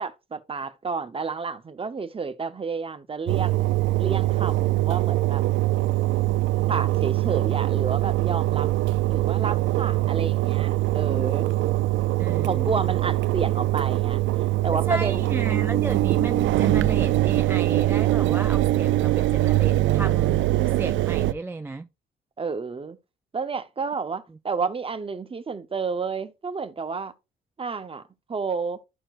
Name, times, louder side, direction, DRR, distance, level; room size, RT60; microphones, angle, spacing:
voice 1, 0.0-5.4 6.7-8.7 9.1-11.5 12.4-14.2 14.6-15.3 22.4-23.0 23.3-27.1 27.6-28.0 28.3-28.8, right 4 dB, 30° right, 0.9 m, -30 dB
Engine, 3.3-21.3, right 16 dB, 75° right, 0.4 m, -23 dB
voice 2, 12.2-12.7 14.7-20.5 20.8-21.9, right 2 dB, 10° right, 0.3 m, -33 dB
12.5 x 4.4 x 2.5 m
cardioid pair, 90°, 20 cm